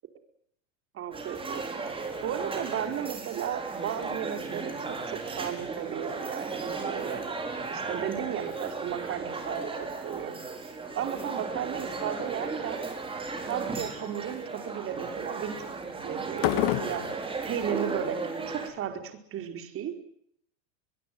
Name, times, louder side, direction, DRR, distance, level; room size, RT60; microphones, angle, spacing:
voice 1, 0.9-7.4 7.7-12.8 13.5-17.1 17.4-20.0, right 9 dB, 35° right, 7 dB, 5.1 m, -35 dB
sound 1, 1.1-18.7, right 4 dB, 15° right, 5.6 m, -35 dB
sound 2, 10.9-11.2 11.6-12.1 12.7-13.1 13.5-13.7 16.3-17.2, left 19 dB, 55° left, 1.5 m, -29 dB
24.0 x 23.0 x 9.6 m, 0.69 s
supercardioid pair, 145°, 39 cm